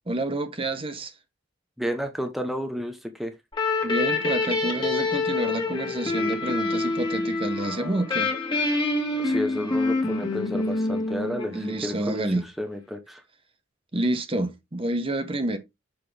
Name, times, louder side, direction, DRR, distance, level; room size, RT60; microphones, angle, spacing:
voice 1, 0.1-1.1 3.8-8.3 11.5-12.5 13.9-15.6, right 1 dB, 25° right, 1.0 m, -28 dB
voice 2, 1.8-3.3 9.2-12.3 12.6-13.2, equal, ahead, 0.8 m, -31 dB
sound 1, 3.5-12.0, left 3 dB, 25° left, 1.9 m, -26 dB
7.0 x 5.9 x 3.3 m
head